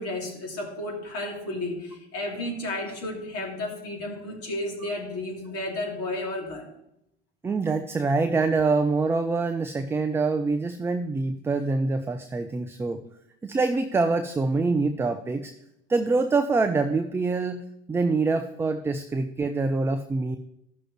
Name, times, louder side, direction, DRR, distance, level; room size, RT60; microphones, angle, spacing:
voice 1, 0.0-6.6, left 1 dB, 45° left, -1 dB, 2.8 m, -32 dB
voice 2, 7.4-13.0 13.4-15.5 15.9-17.6 17.9-20.4, right 3 dB, 10° right, 8 dB, 0.3 m, -25 dB
14.0 x 6.2 x 3.2 m, 0.80 s
figure-of-eight pair, 70°, 34 cm